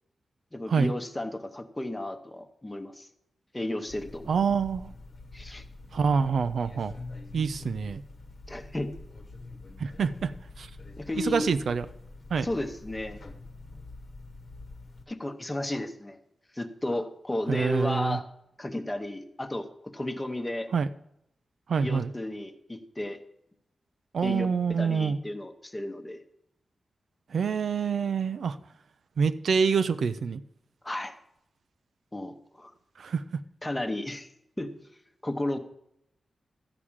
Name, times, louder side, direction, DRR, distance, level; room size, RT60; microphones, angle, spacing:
voice 1, 0.5-3.1 3.5-4.3 5.3-5.6 8.5-8.9 11.0-11.5 12.4-13.2 15.1-16.2 16.5-18.2 18.6-20.7 21.8-23.2 24.2-26.2 30.8-31.1 32.1-32.7 33.6-34.3 34.6-34.7 35.2-35.6, left 1 dB, 15° left, 7 dB, 0.9 m, -33 dB
sound 1, 3.9-15.0, left 2 dB, 50° left, 1.1 m, -45 dB
voice 2, 4.3-4.9 5.9-6.9 7.3-8.0 9.8-10.3 10.6-10.7 11.2-11.8 12.3-12.5 17.5-18.2 20.7-20.9 21.7-22.1 24.1-25.2 27.3-28.6 29.2-30.4 33.0-33.4, right 6 dB, 75° right, 11 dB, 0.5 m, -26 dB
13.5 x 4.9 x 7.3 m, 0.78 s
wide cardioid pair, 130°, 0 cm